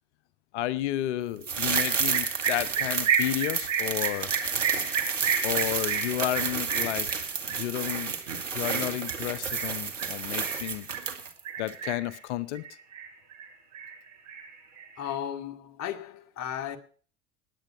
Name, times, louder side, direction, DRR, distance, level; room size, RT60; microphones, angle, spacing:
voice 1, 0.5-4.3 5.4-8.1 8.5-10.9 11.6-12.6, left 14 dB, 70° left, 0.8 m, -32 dB
sound 1, 1.4-11.4 11.7-11.8, right 6 dB, 85° right, 1.7 m, -31 dB
sound 2, 1.7-11.1 11.5-12.2 12.5-13.5 13.7-15.1, right 7 dB, 50° right, 6.9 m, -32 dB
voice 2, 15.0-16.8, left 10 dB, 45° left, 1.9 m, -35 dB
19.5 x 8.6 x 5.8 m
figure-of-eight pair, 70°, 37 cm